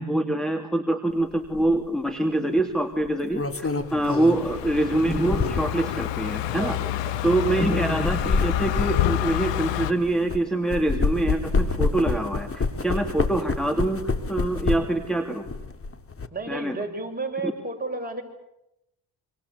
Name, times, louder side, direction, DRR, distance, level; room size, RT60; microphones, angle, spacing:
voice 1, 0.0-6.8 7.2-15.5 16.5-16.8 17.4-17.5, right 1 dB, ahead, 7 dB, 2.9 m, -25 dB
sound 1, 1.5-1.7 3.0-5.9 6.6-6.7 7.8-10.4 10.7-15.1 15.4-16.3, left 4 dB, 30° left, 3.2 m, -27 dB
Car passing by, 3.9-9.9, left 13 dB, 85° left, 1.9 m, -28 dB
voice 2, 6.6-6.9 7.2-7.6 16.3-18.2, right 3 dB, 20° right, 2 dB, 7.2 m, -33 dB
26.5 x 26.5 x 8.5 m, 0.86 s
cardioid pair, 75°, 42 cm